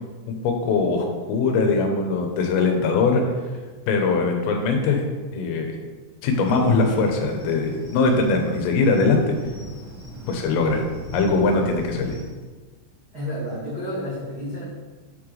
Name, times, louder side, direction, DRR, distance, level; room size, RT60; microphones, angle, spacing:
voice 1, 0.4-3.2 3.9-5.0 5.3-5.7 6.2-9.4 10.3-10.8 11.1-12.2, left 3 dB, 90° left, 3 dB, 3.5 m, -21 dB
sound 1, 6.4-12.2, equal, 35° left, 1.6 m, -39 dB
voice 2, 13.1-14.6, left 1 dB, 70° right, -11 dB, 0.9 m, -30 dB
8.2 x 6.1 x 3.3 m, 1.4 s
omnidirectional pair, 5.7 m